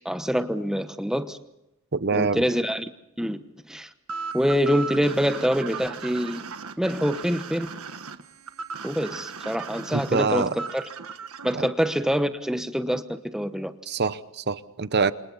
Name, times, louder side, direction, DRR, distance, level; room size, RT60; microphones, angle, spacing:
voice 1, 0.0-1.4 2.1-2.9 3.2-3.9 4.3-6.5 6.8-7.7 8.8-10.8 11.4-13.7, equal, 5° right, 9 dB, 1.1 m, -25 dB
voice 2, 1.9-2.4 9.9-10.6 11.5-11.7 13.9-15.1, right 4 dB, 50° right, 14 dB, 0.9 m, -25 dB
sound 1, 4.1-11.5, right 5 dB, 85° right, 1.5 m, -36 dB
29.5 x 26.5 x 4.1 m, 0.89 s
head